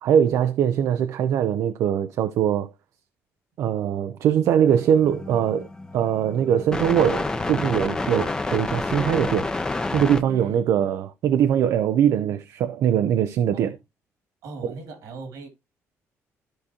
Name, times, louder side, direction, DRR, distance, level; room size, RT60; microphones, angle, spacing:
voice 1, 0.0-2.7 3.6-5.7 5.9-9.5 9.9-13.8 14.6-14.7, right 9 dB, 70° right, 0.5 m, -22 dB
sound 1, 4.7-10.2, left 2 dB, 15° left, 0.7 m, -29 dB
voice 2, 10.3-10.6 13.5-13.8 14.4-15.5, right 3 dB, 90° right, 2.6 m, -39 dB
13.5 x 4.9 x 2.9 m
cardioid pair, 150°, 6 cm